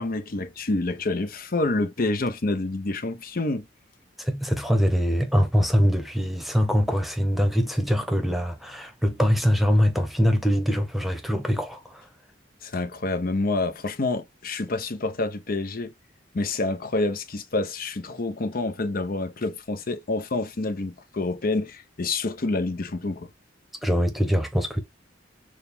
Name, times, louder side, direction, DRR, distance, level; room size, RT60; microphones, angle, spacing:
voice 1, 0.0-3.7 12.6-15.9 16.3-23.3, left 2 dB, 50° left, 0.8 m, -27 dB
voice 2, 4.2-12.0 23.8-24.8, equal, ahead, 1.0 m, -23 dB
6.5 x 2.3 x 3.5 m
head